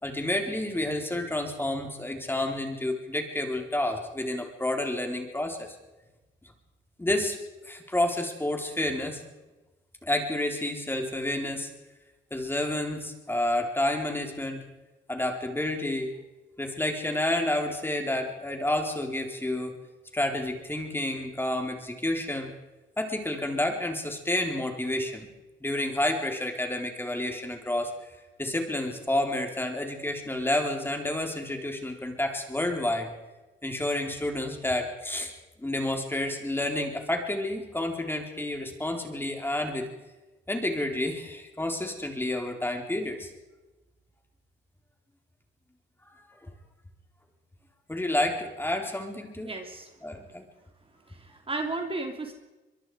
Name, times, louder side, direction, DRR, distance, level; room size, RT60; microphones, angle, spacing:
voice 1, 0.0-5.8 7.0-7.4 7.6-9.2 10.0-11.7 12.3-14.6 15.1-16.1 16.6-19.8 20.1-22.5 23.0-25.3 25.6-27.9 28.4-33.1 33.6-35.3 35.6-39.9 40.5-43.3 47.9-49.5 50.0-50.5, left 1 dB, 10° left, 3 dB, 4.2 m, -29 dB
voice 2, 49.4-49.9 51.1-52.3, right 2 dB, 25° right, 4 dB, 3.1 m, -34 dB
24.0 x 23.0 x 5.0 m, 1.1 s
cardioid pair, 90°, 20 cm